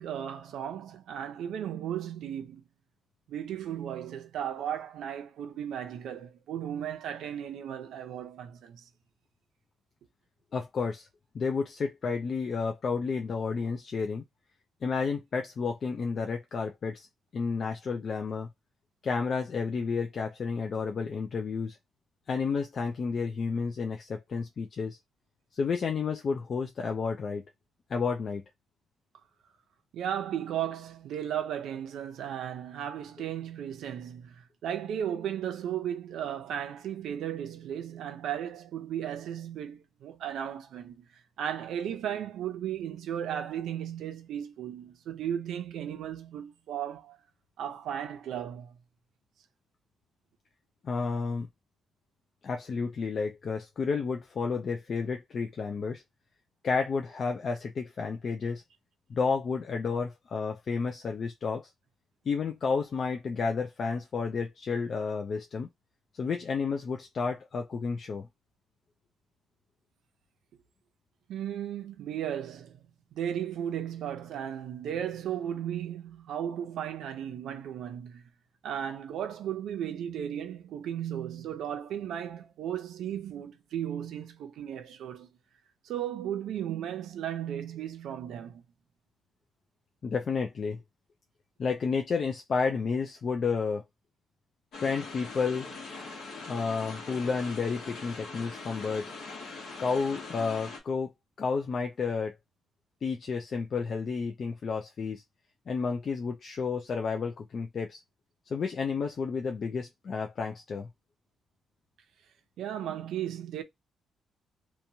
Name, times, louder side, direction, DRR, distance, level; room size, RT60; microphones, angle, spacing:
voice 1, 0.0-2.6 3.3-8.9 29.9-41.1 41.4-47.2 47.6-48.8 71.3-72.8 73.1-78.2 78.6-85.4 85.8-88.6 112.6-113.6, right 10 dB, 85° right, 0.6 m, -35 dB
voice 2, 10.5-11.1 11.3-14.2 14.8-17.1 17.3-18.5 19.0-21.8 22.3-25.0 25.5-27.4 27.9-28.4 50.8-51.5 52.4-56.0 56.6-58.6 59.1-61.6 62.3-65.7 66.1-68.3 90.0-90.8 91.6-93.8 94.8-95.7 96.5-99.1 99.8-101.1 101.4-102.3 103.0-105.2 105.7-108.0 108.5-110.9, left 5 dB, 40° left, 0.3 m, -31 dB
sound 1, 94.7-100.8, left 3 dB, 70° left, 1.1 m, -42 dB
2.9 x 2.3 x 2.7 m
wide cardioid pair, 175°, 0 cm